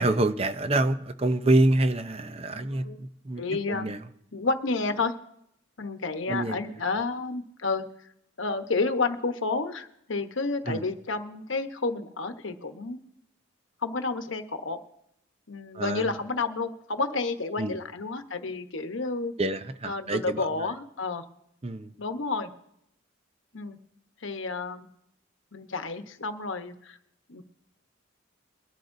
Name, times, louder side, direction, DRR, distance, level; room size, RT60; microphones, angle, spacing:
voice 1, 0.0-3.4 3.7-4.0 6.3-6.6 10.7-10.8 15.7-16.1 17.6-17.8 19.4-20.4 21.6-21.9, right 2 dB, 30° right, 10 dB, 0.6 m, -26 dB
voice 2, 2.5-3.0 3.4-3.9 4.3-5.1 5.8-7.8 8.4-13.0 13.8-14.8 15.5-19.3 19.8-21.2 22.0-22.5 23.5-23.8 24.2-24.9 25.5-27.0 27.3-27.4, left 3 dB, 75° left, 7 dB, 1.0 m, -30 dB
22.5 x 12.0 x 2.6 m, 0.76 s
head